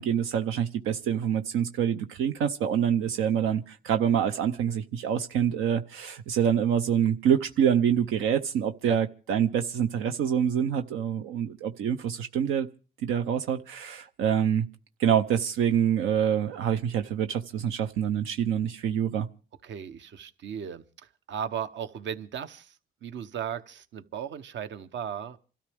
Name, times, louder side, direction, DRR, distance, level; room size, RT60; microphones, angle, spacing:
voice 1, 0.0-12.7 13.0-14.7 15.0-19.3, right 8 dB, 90° right, 0.7 m, -26 dB
voice 2, 19.6-25.4, right 8 dB, 65° right, 0.9 m, -36 dB
27.0 x 13.0 x 3.5 m
cardioid pair, 90°, 20 cm